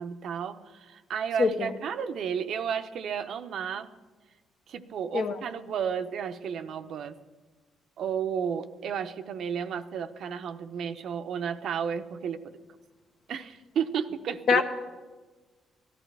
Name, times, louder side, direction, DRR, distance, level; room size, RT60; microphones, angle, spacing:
voice 1, 0.0-3.9 4.7-7.2 8.0-12.6 13.3-14.6, right 7 dB, 70° right, 9 dB, 0.6 m, -32 dB
voice 2, 1.4-1.7 5.1-5.3 14.5-14.6, left 5 dB, 65° left, 6 dB, 1.1 m, -23 dB
17.5 x 11.5 x 3.3 m, 1.3 s
cardioid pair, 90°, 0 cm